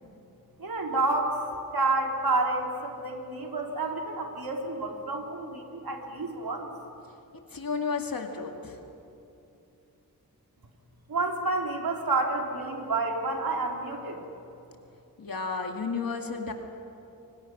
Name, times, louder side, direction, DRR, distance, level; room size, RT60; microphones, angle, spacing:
voice 1, 0.6-1.4 1.7-6.7 11.1-14.2, right 3 dB, 75° right, 1 dB, 3.3 m, -29 dB
voice 2, 7.5-8.8 15.2-16.5, left 4 dB, 70° left, 3 dB, 2.3 m, -32 dB
28.5 x 25.0 x 6.2 m, 2.8 s
wide cardioid pair, 90°, 36 cm